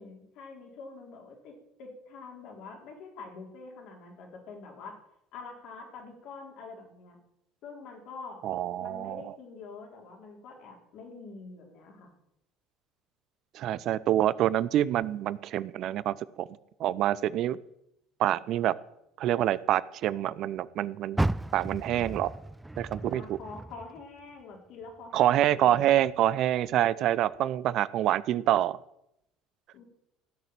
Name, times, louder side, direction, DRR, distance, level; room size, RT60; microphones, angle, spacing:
voice 1, 0.0-5.0 5.3-7.2 7.6-8.4 8.8-12.1 23.0-26.0 29.7-29.8, left 4 dB, 60° left, 1 dB, 4.3 m, -46 dB
voice 2, 8.4-9.2 13.5-16.5 16.8-17.6 18.2-18.7 19.2-21.2 21.5-22.3 22.8-23.4 25.1-28.8, right 12 dB, 55° right, 20 dB, 0.6 m, -26 dB
Car, 21.1-24.4 24.8-26.2 26.6-26.7 27.3-27.4, right 1 dB, 10° right, 0.4 m, -34 dB
16.5 x 6.5 x 9.0 m, 0.82 s
hypercardioid pair, 65°, 0 cm